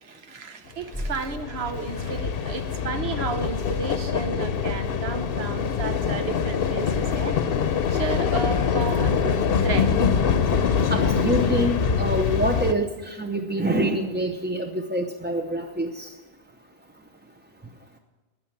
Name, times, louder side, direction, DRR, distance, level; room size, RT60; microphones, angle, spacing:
voice 1, 0.0-7.4 7.9-9.2 9.6-10.0, right 5 dB, 75° right, 9 dB, 1.2 m, -33 dB
sound 1, 0.8-12.7, left 6 dB, 65° left, 0.9 m, -24 dB
voice 2, 10.9-16.1, right 1 dB, 15° right, 4 dB, 0.5 m, -26 dB
13.0 x 9.5 x 7.2 m, 1.2 s
omnidirectional pair, 1.1 m